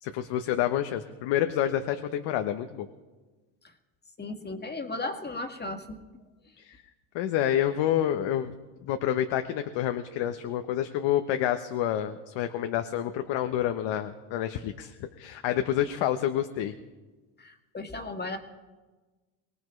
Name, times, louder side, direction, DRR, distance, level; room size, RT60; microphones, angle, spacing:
voice 1, 0.0-2.9 6.6-6.8 7.1-8.5 8.8-16.7, left 11 dB, 65° left, 7 dB, 1.1 m, -28 dB
voice 2, 4.2-6.0 17.4-18.4, left 2 dB, 20° left, 5 dB, 1.9 m, -35 dB
24.0 x 18.5 x 3.3 m, 1.3 s
supercardioid pair, 95°, 49 cm